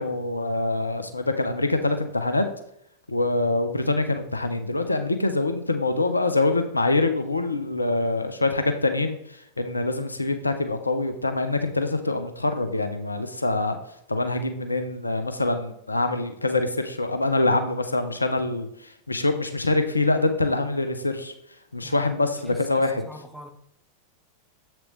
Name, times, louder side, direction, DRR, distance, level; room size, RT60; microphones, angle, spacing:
voice 1, 0.0-2.5 3.1-13.8 14.1-21.3 21.7-23.0, left 2 dB, 80° left, 8 dB, 0.6 m, -25 dB
voice 2, 21.8-22.1 22.4-23.5, equal, 5° right, 2 dB, 1.2 m, -43 dB
7.6 x 6.1 x 3.2 m, 0.76 s
figure-of-eight pair, 90°, 0 cm